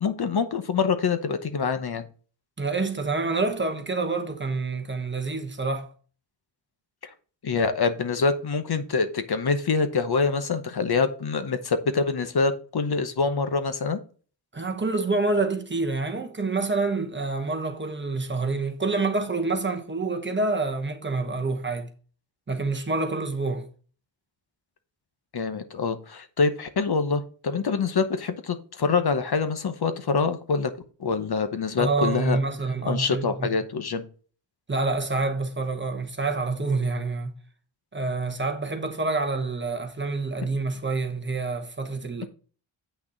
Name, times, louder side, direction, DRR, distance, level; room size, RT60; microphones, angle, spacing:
voice 1, 0.0-2.1 7.4-14.0 25.3-30.7 31.0-32.4 32.9-34.0, left 4 dB, 55° left, 0.9 m, -25 dB
voice 2, 2.6-5.9 14.5-21.9 22.5-23.7 31.8-33.6 34.7-37.3 37.9-42.3, right 3 dB, 25° right, 1.1 m, -27 dB
8.4 x 6.1 x 3.9 m
wide cardioid pair, 180°, 46 cm